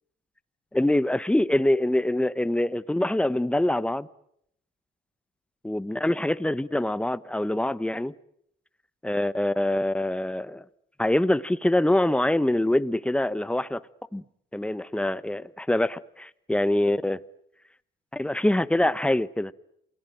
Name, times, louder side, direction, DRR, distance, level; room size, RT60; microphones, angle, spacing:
voice 1, 0.7-4.1 5.6-8.1 9.0-10.6 11.0-13.8 14.1-14.2 14.5-17.2 18.1-19.5, left 1 dB, 5° left, 1.1 m, -24 dB
28.5 x 19.5 x 9.1 m
cardioid pair, 90°, 20 cm